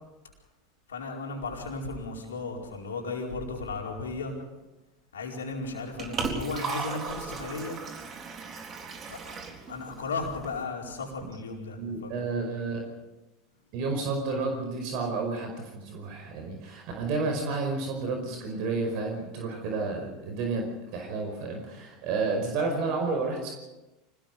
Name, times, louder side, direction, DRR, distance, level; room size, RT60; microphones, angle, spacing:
voice 1, 0.9-4.4 5.1-7.8 9.1-12.3, left 3 dB, 85° left, 0 dB, 4.7 m, -35 dB
Liquid, 5.6-10.6, right 5 dB, 35° right, 4.1 m, -37 dB
voice 2, 11.8-12.8 13.7-20.7 20.9-23.5, right 3 dB, 60° right, 3 dB, 5.3 m, -31 dB
25.5 x 19.5 x 5.5 m, 1.0 s
hypercardioid pair, 85°, 0 cm